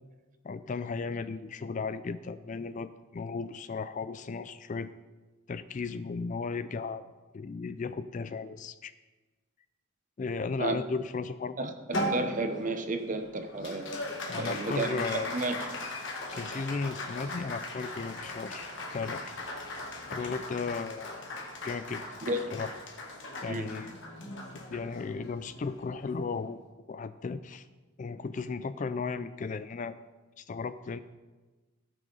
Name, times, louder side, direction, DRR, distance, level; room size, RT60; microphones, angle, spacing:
voice 1, 0.4-4.9 5.5-8.9 10.2-11.7 14.3-15.4 16.3-18.7 18.9-19.4 20.1-21.3 21.6-22.2 22.5-22.7 23.4-24.0 24.5-26.6 26.9-27.7 28.0-30.0 30.4-31.0, left 4 dB, 35° left, 13 dB, 0.3 m, -35 dB
voice 2, 11.6-14.0 14.4-15.7 22.2-22.4 23.5-23.7, right 2 dB, 35° right, 8 dB, 0.8 m, -32 dB
Applause, 11.9-26.6, left 1 dB, 60° left, 1.6 m, -38 dB
17.0 x 6.1 x 3.9 m, 1.2 s
head